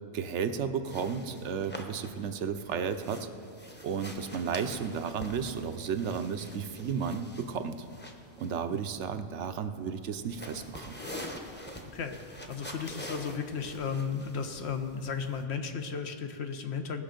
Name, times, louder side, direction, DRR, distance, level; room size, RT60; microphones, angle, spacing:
voice 1, 0.1-3.3 3.8-7.8 8.4-11.0, right 6 dB, 75° right, 9 dB, 0.9 m, -33 dB
sound 1, 0.8-15.4, equal, 10° left, 0.8 m, -46 dB
voice 2, 11.9-17.0, left 6 dB, 65° left, 6 dB, 1.1 m, -35 dB
18.5 x 6.7 x 5.1 m, 2.5 s
omnidirectional pair, 1.2 m